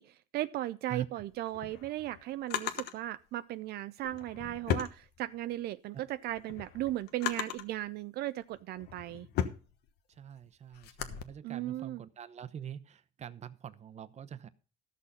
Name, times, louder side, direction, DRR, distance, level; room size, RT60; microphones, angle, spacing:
voice 1, 0.0-9.3 11.4-12.0, right 15 dB, 70° right, 0.5 m, -37 dB
Drawer open or close, 1.3-3.0 4.0-5.6 6.1-7.8 8.4-11.2, left 9 dB, 75° left, 1.3 m, -37 dB
voice 2, 10.2-14.5, right 9 dB, 40° right, 0.8 m, -44 dB
13.5 x 6.4 x 5.5 m
cardioid pair, 110°, 17 cm